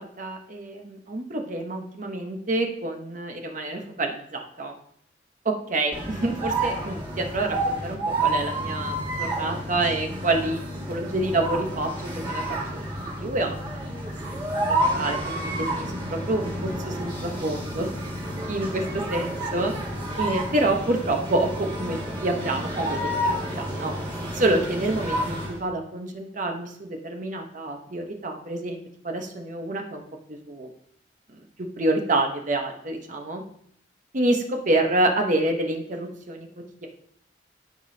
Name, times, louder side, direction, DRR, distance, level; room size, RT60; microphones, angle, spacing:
voice 1, 0.0-4.7 5.4-10.6 10.9-12.9 13.2-13.8 14.3-17.9 18.5-19.7 20.2-23.9 24.3-30.7 31.3-33.4 34.1-36.9, right 2 dB, 45° right, 3 dB, 0.9 m, -28 dB
sound 1, 5.9-25.6, right 1 dB, 25° right, 2.0 m, -30 dB
13.0 x 5.1 x 2.8 m, 0.67 s
head